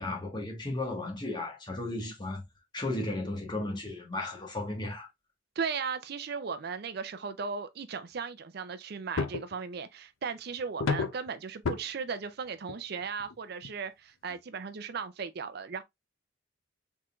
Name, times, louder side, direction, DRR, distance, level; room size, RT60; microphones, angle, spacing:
voice 1, 0.0-2.4 2.7-5.1, left 2 dB, 20° left, 1.3 m, -34 dB
voice 2, 5.6-15.8, right 5 dB, 55° right, 0.4 m, -36 dB
sound 1, 9.2-9.6 10.8-11.3 11.7-11.8 12.7-12.8 13.2-13.3 13.6-13.7 14.3-14.4, left 4 dB, 90° left, 0.6 m, -30 dB
4.7 x 3.7 x 2.3 m
head